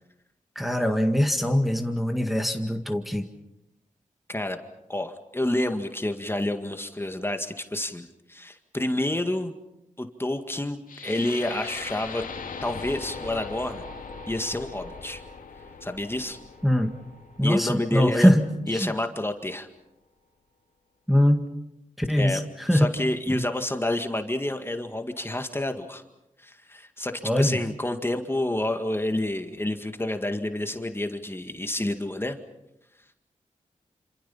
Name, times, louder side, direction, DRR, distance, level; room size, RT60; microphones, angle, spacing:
voice 1, 0.6-3.3 16.6-16.9 17.4-18.5 18.7-18.9 21.1-21.5 22.0-22.9 23.3-23.4 27.2-27.6, equal, ahead, 4 dB, 1.9 m, -22 dB
voice 2, 4.9-9.5 10.0-12.2 12.6-13.8 14.3-15.2 15.8-16.4 17.4-18.3 18.7-19.7 22.1-22.4 22.7-26.0 26.4-32.4, left 1 dB, 15° left, 6 dB, 2.0 m, -29 dB
sound 1, 10.9-18.9, left 4 dB, 80° left, 2.5 m, -40 dB
27.5 x 26.5 x 5.7 m, 0.89 s
cardioid pair, 70°, 14 cm